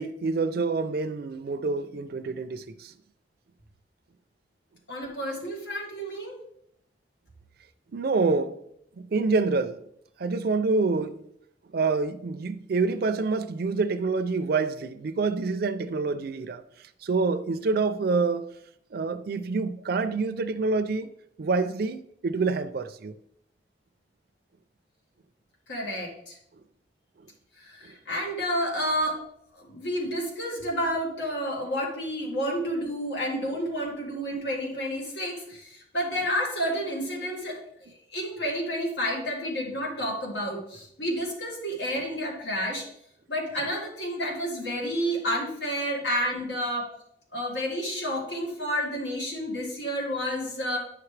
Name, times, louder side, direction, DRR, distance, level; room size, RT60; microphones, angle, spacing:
voice 1, 0.0-2.9 7.9-8.6 9.0-9.8 10.2-11.2 11.7-16.6 17.0-18.5 18.9-21.1 21.4-23.1, right 4 dB, 60° right, 0.4 m, -27 dB
voice 2, 4.9-6.4 25.7-26.4 27.6-29.3 29.5-42.9 43.3-46.9 47.3-50.8, equal, 90° left, 2.1 m, -30 dB
9.4 x 5.9 x 3.2 m
head